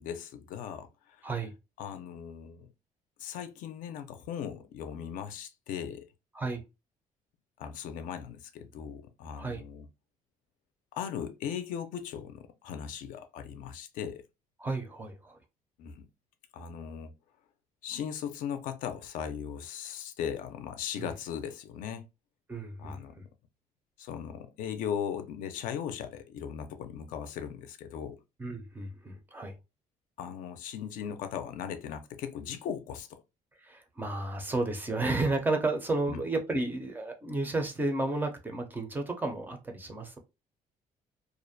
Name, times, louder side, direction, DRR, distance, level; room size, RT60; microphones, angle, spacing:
voice 1, 0.0-1.3 1.8-2.7 3.2-6.1 7.6-9.9 10.9-14.2 15.8-16.1 16.5-17.1 17.8-22.0 22.8-23.3 24.0-28.2 30.2-33.2 36.1-36.2, left 8 dB, 75° left, 0.4 m, -38 dB
voice 2, 14.6-15.4 21.0-21.1 22.5-23.2 28.4-29.5 33.6-40.2, right 2 dB, 15° right, 0.4 m, -32 dB
2.4 x 2.0 x 2.5 m
cardioid pair, 165°, 14 cm